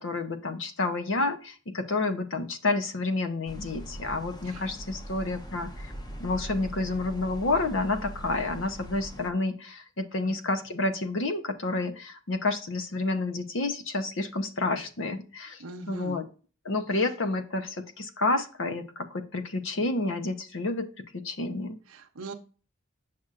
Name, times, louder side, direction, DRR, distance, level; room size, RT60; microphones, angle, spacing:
voice 1, 0.0-5.9 6.2-16.3 16.6-21.8, left 2 dB, 65° left, 8 dB, 0.8 m, -30 dB
sound 1, 3.5-9.3, equal, 20° left, 0.8 m, -41 dB
voice 2, 15.6-16.2 21.9-22.3, right 2 dB, 90° right, 3 dB, 0.7 m, -41 dB
7.4 x 6.0 x 2.5 m, 0.37 s
head